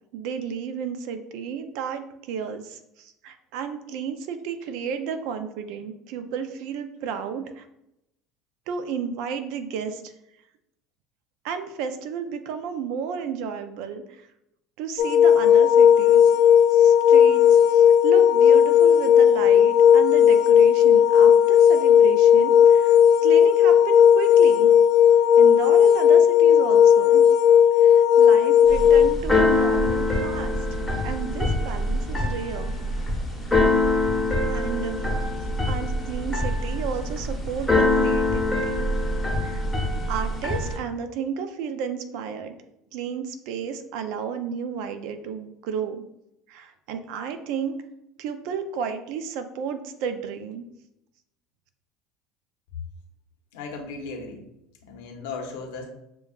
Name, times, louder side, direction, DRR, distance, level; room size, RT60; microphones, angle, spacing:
voice 1, 0.1-7.7 8.7-10.1 11.4-14.3 14.8-16.2 16.7-22.9 23.2-24.7 25.4-27.2 27.8-32.7 34.5-35.1 35.7-38.9 39.4-39.7 40.1-42.6 42.9-46.0 46.5-47.8 48.2-50.7, right 6 dB, 65° right, 8 dB, 0.5 m, -32 dB
sound 1, 15.0-29.1, left 9 dB, 65° left, 0.3 m, -15 dB
Keyboard (musical), 28.7-40.8, left 2 dB, 10° left, 0.9 m, -24 dB
voice 2, 53.5-54.4 54.8-55.9, left 4 dB, 85° left, 3 dB, 0.8 m, -36 dB
6.9 x 2.3 x 2.4 m, 0.84 s
cardioid pair, 140°, 0 cm